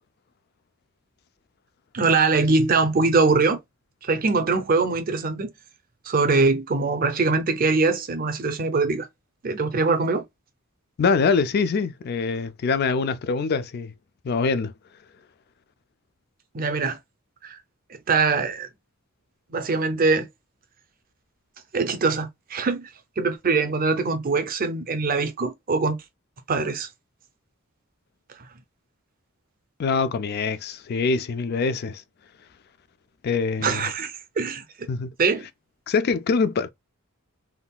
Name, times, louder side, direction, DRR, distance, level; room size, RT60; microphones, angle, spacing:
voice 1, 1.9-3.6 4.0-5.5 6.0-9.1 9.4-10.2 16.5-17.0 17.4-17.6 18.1-18.7 19.5-20.3 21.7-22.9 23.2-26.0 26.5-26.9 33.6-34.6 35.2-35.5, right 4 dB, 45° right, 0.5 m, -22 dB
voice 2, 11.0-13.9 14.2-14.7 29.8-32.0 33.2-33.9 34.9-35.1 35.9-36.7, left 4 dB, 50° left, 0.3 m, -24 dB
3.6 x 2.4 x 2.2 m
head